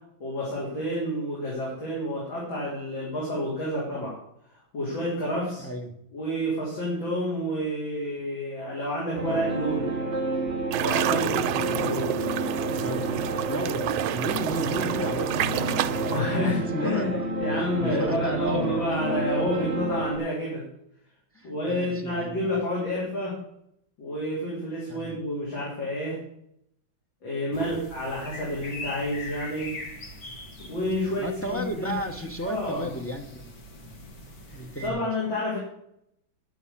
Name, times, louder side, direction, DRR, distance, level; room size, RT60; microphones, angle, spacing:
voice 1, 0.2-4.1 4.7-5.7 6.1-10.0 10.8-12.0 16.1-17.1 17.4-20.6 21.4-23.4 24.0-26.2 27.2-29.8 30.6-31.9 32.5-32.9 34.5-34.6 34.8-35.6, equal, 70° left, -6 dB, 3.8 m, -29 dB
voice 2, 5.6-5.9 11.8-12.3 12.8-16.2 16.7-17.2 17.5-18.8 21.3-22.5 24.9-25.2 27.5-27.8 31.2-33.5 33.8-34.0 34.5-35.0, right 1 dB, 20° left, 4 dB, 0.3 m, -34 dB
sound 1, 9.2-20.2, right 2 dB, 30° right, 1.8 m, -30 dB
sound 2, 10.7-16.2, right 13 dB, 90° right, 1.4 m, -29 dB
sound 3, 27.5-34.9, left 1 dB, 50° left, 2.1 m, -42 dB
10.5 x 6.4 x 7.1 m, 0.75 s
omnidirectional pair, 2.2 m